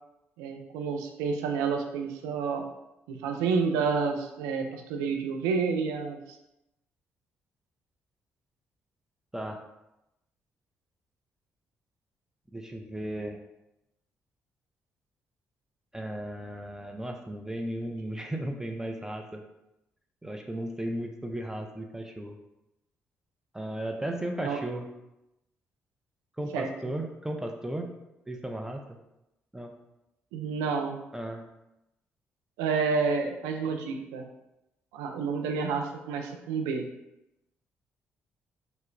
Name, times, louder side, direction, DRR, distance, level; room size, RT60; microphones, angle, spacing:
voice 1, 0.4-2.6 3.1-6.4 24.4-24.6 26.5-26.7 30.3-31.0 32.6-34.2 34.9-36.8, right 5 dB, 90° right, 4 dB, 0.3 m, -29 dB
voice 2, 12.5-13.4 15.9-19.4 20.2-22.4 23.5-24.9 26.4-27.9 28.3-28.8 29.5-29.7 31.1-31.4, right 1 dB, 10° right, 3 dB, 0.4 m, -35 dB
4.4 x 2.0 x 2.5 m, 0.90 s
supercardioid pair, 50°, 5 cm